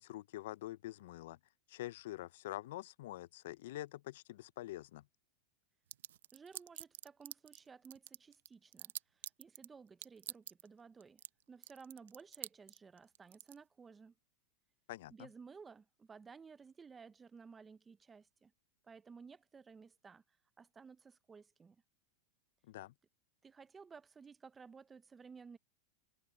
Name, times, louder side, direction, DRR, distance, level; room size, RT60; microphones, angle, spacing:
voice 1, 0.0-1.4 1.7-5.0 14.9-15.3 22.7-22.9, left 15 dB, 60° left, 0.3 m, -46 dB
sound 1, 5.9-7.6 7.8-9.7 10.0-10.7 11.0-11.3 11.6-13.6, right 12 dB, 85° right, 0.6 m, -45 dB
voice 2, 6.3-11.2 11.5-14.1 15.1-18.5 18.8-20.2 20.6-21.8 23.4-25.6, right 5 dB, 10° right, 0.4 m, -56 dB
supercardioid pair, 170°, 0 cm